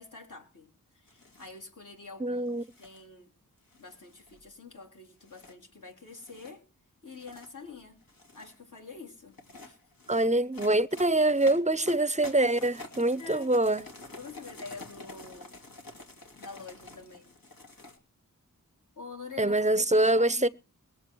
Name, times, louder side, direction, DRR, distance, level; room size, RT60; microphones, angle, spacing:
voice 1, 0.0-3.3 3.8-6.7 7.0-8.0 8.3-9.8 13.2-13.5 14.1-15.6 16.4-17.4 18.9-20.5, left 4 dB, 65° left, 3.5 m, -47 dB
sound 1, 1.1-1.6 2.5-3.0 3.7-4.5 5.2-5.5 6.1-6.5 7.1-7.5 8.0-8.6 9.3-18.0, left 2 dB, 80° left, 2.6 m, -49 dB
voice 2, 2.2-2.6 10.1-13.8 19.4-20.5, right 2 dB, 20° right, 0.6 m, -24 dB
21.5 x 7.4 x 4.5 m
wide cardioid pair, 85°, 34 cm